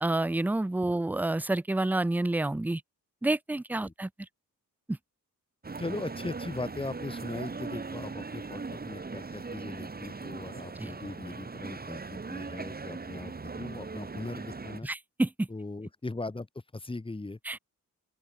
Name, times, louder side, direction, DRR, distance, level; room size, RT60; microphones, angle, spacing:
voice 1, 0.0-2.8 3.2-4.1 4.9-5.0 10.8-10.9 14.8-15.5 17.5-17.6, right 2 dB, 5° right, 0.4 m, -29 dB
sound 1, 5.6-14.8, right 4 dB, 25° right, 2.3 m, -39 dB
voice 2, 5.8-14.9 15.5-16.5 16.7-17.4, left 2 dB, 15° left, 1.7 m, -39 dB
open air
wide cardioid pair, 155°, 35 cm